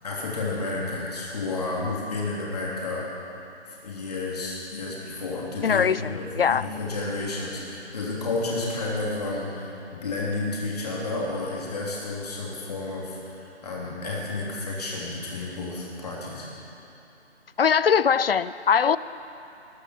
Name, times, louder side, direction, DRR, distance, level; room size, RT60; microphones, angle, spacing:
voice 1, 0.0-3.1 3.7-16.5, left 3 dB, 35° left, -4 dB, 3.1 m, -31 dB
voice 2, 5.6-6.7 17.6-19.0, left 7 dB, 60° left, 17 dB, 0.5 m, -21 dB
20.5 x 13.5 x 4.5 m, 2.9 s
figure-of-eight pair, 165°, 34 cm